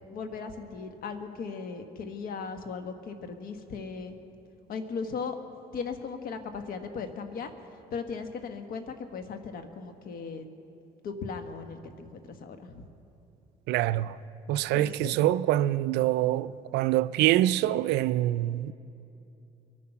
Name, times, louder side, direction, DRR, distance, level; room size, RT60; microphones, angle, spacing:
voice 1, 0.1-4.1 4.7-5.4 5.7-7.5 7.9-10.5 11.0-12.9 14.7-15.2, left 5 dB, 60° left, 1.4 m, -37 dB
voice 2, 13.7-14.2 14.5-18.7, right 14 dB, 85° right, 0.4 m, -25 dB
22.5 x 9.8 x 5.9 m
cardioid pair, 110°, 17 cm